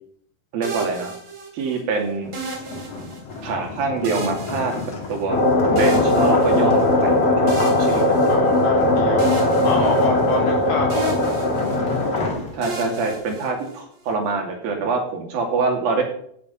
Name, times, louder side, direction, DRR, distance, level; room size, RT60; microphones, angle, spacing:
voice 1, 0.5-1.1 1.5-2.3 3.4-4.7 5.1-5.4 5.7-8.2 12.5-16.0, right 4 dB, 75° right, 2 dB, 4.4 m, -25 dB
sound 1, 0.6-1.8 2.3-3.5 4.0-5.4 5.8-6.9 7.5-8.8 9.2-10.6 10.9-12.1 12.6-14.0, right 3 dB, 45° right, 3.9 m, -33 dB
sound 2, 2.2-13.1, left 3 dB, 45° left, 3.4 m, -31 dB
sound 3, 5.3-12.3, left 2 dB, 30° left, 1.2 m, -19 dB
voice 2, 8.3-11.3, left 2 dB, 85° left, 0 dB, 5.9 m, -27 dB
15.5 x 8.2 x 5.5 m, 0.66 s
omnidirectional pair, 4.2 m